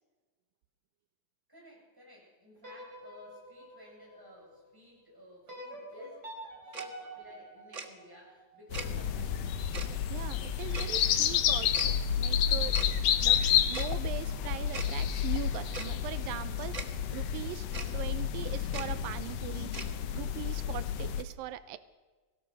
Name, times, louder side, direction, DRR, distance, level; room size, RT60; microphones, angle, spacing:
voice 1, 1.5-6.3 6.6-9.6, left 1 dB, 5° right, -3 dB, 7.9 m, -54 dB
sound 1, 2.6-4.8 5.5-8.6, right 1 dB, 25° right, 4.8 m, -47 dB
Tick-tock, 6.7-6.9 7.7-7.9 8.7-8.9 9.7-9.9 10.7-10.9 11.7-11.9 12.7-12.9 13.7-13.9 14.7-14.9 15.7-15.9 16.7-16.9 17.7-17.9 18.7-18.9 19.7-19.9, right 4 dB, 65° right, 0.7 m, -39 dB
sound 2, 8.7-21.2, left 9 dB, 70° left, 1.5 m, -30 dB
voice 2, 10.1-12.9 13.2-17.7 17.9-19.7 20.1-21.8, right 13 dB, 90° right, 13 dB, 2.5 m, -41 dB
24.0 x 17.0 x 6.5 m, 1.3 s
omnidirectional pair, 4.0 m